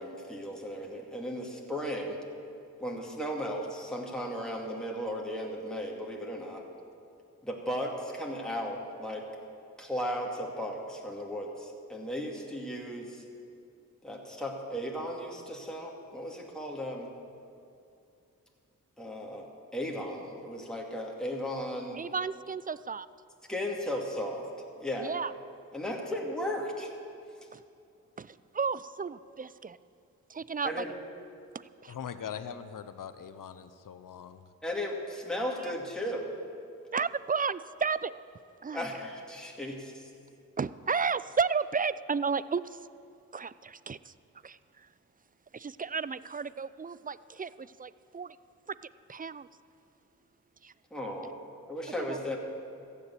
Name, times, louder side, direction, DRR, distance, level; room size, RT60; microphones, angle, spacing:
voice 1, 0.0-2.2 2.8-6.6 7.4-9.2 9.8-13.2 14.0-17.1 19.0-19.5 19.7-22.0 23.5-24.5 24.8-25.1 25.7-26.9 30.6-30.9 34.6-36.3 38.7-39.7 50.9-51.3 51.7-52.4, equal, ahead, -2 dB, 2.4 m, -35 dB
voice 2, 21.9-23.1 25.0-25.3 27.5-27.6 28.2-29.8 30.3-30.9 31.5-32.0 35.6-35.7 36.9-38.1 38.6-38.9 40.6-42.9 43.3-44.1 44.4-44.9 45.5-48.4 48.7-48.8 49.1-49.5 50.6-50.7 52.0-52.3, right 5 dB, 25° right, 17 dB, 0.4 m, -33 dB
voice 3, 31.9-34.4, left 8 dB, 65° left, 11 dB, 0.8 m, -41 dB
14.5 x 7.2 x 8.4 m, 2.6 s
supercardioid pair, 45°, 35 cm